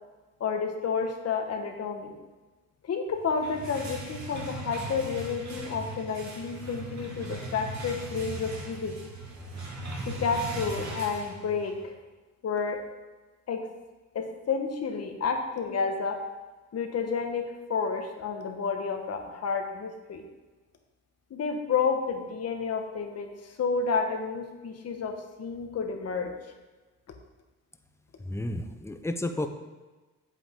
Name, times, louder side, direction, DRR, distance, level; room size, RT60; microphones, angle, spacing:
voice 1, 0.4-2.1 2.8-9.1 10.1-11.9 12.4-12.8 13.5-13.7 14.1-16.2 16.7-20.2 21.3-26.3, left 5 dB, 55° left, 4 dB, 1.4 m, -30 dB
sound 1, 3.2-11.8, right 1 dB, 65° right, 2.4 m, -39 dB
voice 2, 28.2-29.5, left 1 dB, 10° left, 7 dB, 0.8 m, -32 dB
8.4 x 7.9 x 3.8 m, 1.2 s
cardioid pair, 90°, 30 cm